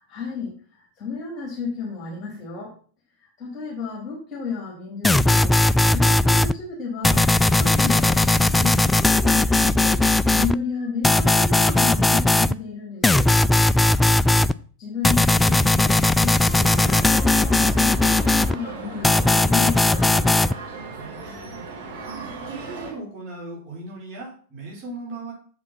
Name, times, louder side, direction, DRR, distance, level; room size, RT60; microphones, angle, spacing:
voice 1, 0.1-2.8 3.2-10.0 10.3-13.3 14.8-20.1, left 5 dB, 30° left, -2 dB, 3.4 m, -32 dB
sound 1, 5.0-6.5 7.0-10.5 11.0-12.5 13.0-14.5 15.0-18.5 19.0-20.5, left 2 dB, 10° left, 0.3 m, -18 dB
sound 2, 16.5-22.9, right 3 dB, 50° right, 3.0 m, -37 dB
voice 2, 20.8-21.6 22.4-25.3, right 2 dB, 35° right, -4 dB, 4.9 m, -38 dB
7.6 x 7.3 x 5.9 m, 0.44 s
figure-of-eight pair, 90°, 0 cm